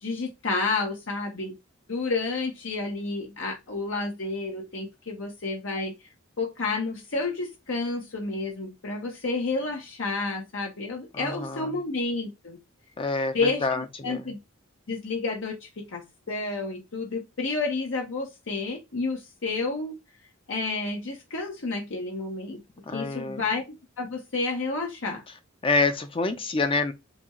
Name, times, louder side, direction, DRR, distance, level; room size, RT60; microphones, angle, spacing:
voice 1, 0.0-1.5 1.9-5.9 6.4-12.6 13.3-14.4 14.9-19.9 20.5-22.6 22.9-25.2, left 3 dB, 70° left, 1.0 m, -30 dB
voice 2, 11.1-11.7 13.0-13.4 13.6-14.2 22.9-23.4 25.6-26.9, left 3 dB, 25° left, 0.6 m, -27 dB
6.0 x 2.4 x 3.0 m
head